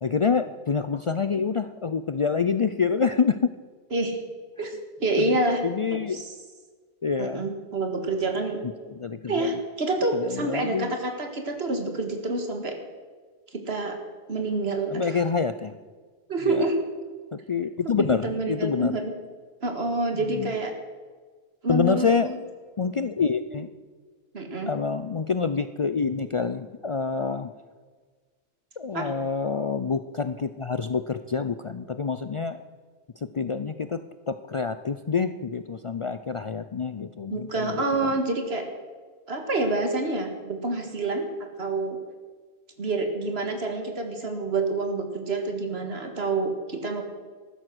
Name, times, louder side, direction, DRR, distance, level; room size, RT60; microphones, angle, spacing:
voice 1, 0.0-3.5 4.6-4.7 5.2-5.3 5.6-6.2 7.0-7.5 8.9-9.6 10.1-10.9 14.9-15.7 16.4-16.7 17.3-18.9 20.1-20.5 21.7-22.3 22.8-23.7 24.7-27.5 28.8-32.6 33.2-34.0 34.3-38.1, left 5 dB, 45° left, 11 dB, 0.4 m, -27 dB
voice 2, 4.6-5.6 5.9-6.3 7.2-8.6 9.3-12.8 13.5-14.0 14.3-15.1 16.3-16.8 18.0-19.1 19.6-20.7 21.6-22.4 24.3-24.7 28.9-29.1 37.3-38.6 39.3-41.3 41.6-42.0 42.8-47.0, right 2 dB, 80° right, 4 dB, 2.0 m, -27 dB
14.5 x 12.5 x 6.2 m, 1.5 s
omnidirectional pair, 1.0 m